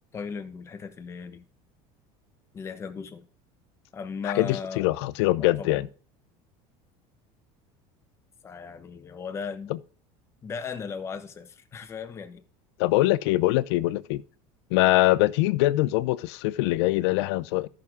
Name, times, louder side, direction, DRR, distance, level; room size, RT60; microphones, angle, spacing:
voice 1, 0.1-1.4 2.5-3.3 3.9-4.9 5.4-5.9 8.4-9.7 10.4-12.4, left 6 dB, 20° left, 1.0 m, -37 dB
voice 2, 4.2-5.9 12.8-14.2 14.7-17.7, left 18 dB, 90° left, 0.6 m, -23 dB
13.5 x 6.2 x 3.6 m
cardioid pair, 170°, 13 cm